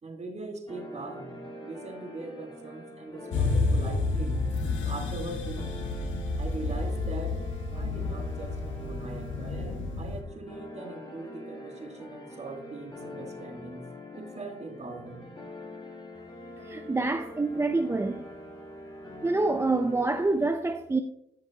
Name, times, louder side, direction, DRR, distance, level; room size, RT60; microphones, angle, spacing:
voice 1, 0.0-1.3 1.6-4.4 4.8-5.7 6.4-7.4 7.7-13.8 14.1-15.2, right 3 dB, 35° right, 1.6 m, -41 dB
sound 1, 0.7-20.3, left 2 dB, 25° left, 1.7 m, -44 dB
sound 2, 3.3-10.2, left 3 dB, 75° left, 1.6 m, -30 dB
voice 2, 16.7-18.3 19.2-21.0, right 3 dB, 15° right, 0.4 m, -26 dB
10.5 x 6.2 x 2.8 m
cardioid pair, 90°, 20 cm